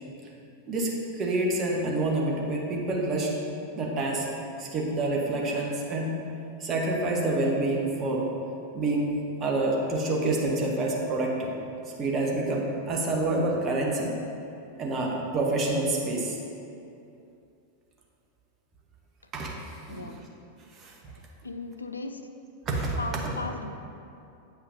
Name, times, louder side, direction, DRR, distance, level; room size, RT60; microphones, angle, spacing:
voice 1, 0.7-3.3 3.8-4.2 4.6-6.1 6.6-8.3 8.7-11.5 12.0-14.1 14.8-16.4 19.3-20.2 20.7-21.1 22.7-23.0 23.2-23.3, right 2 dB, 30° right, -1 dB, 1.0 m, -27 dB
voice 2, 19.9-20.2 21.4-22.2 23.0-23.7, left 3 dB, 80° left, 7 dB, 0.3 m, -36 dB
8.2 x 5.6 x 2.6 m, 2.7 s
figure-of-eight pair, 90°, 0 cm